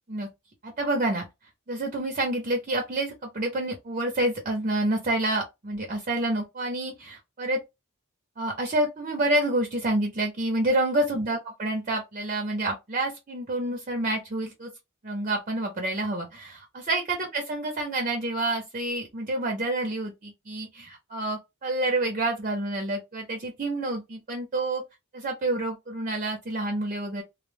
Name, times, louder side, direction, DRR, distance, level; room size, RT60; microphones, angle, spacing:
voice 1, 0.6-1.3 1.7-7.6 8.4-14.7 15.0-24.8 25.1-27.2, right 1 dB, 35° right, 0.6 m, -28 dB
2.1 x 2.1 x 3.2 m
head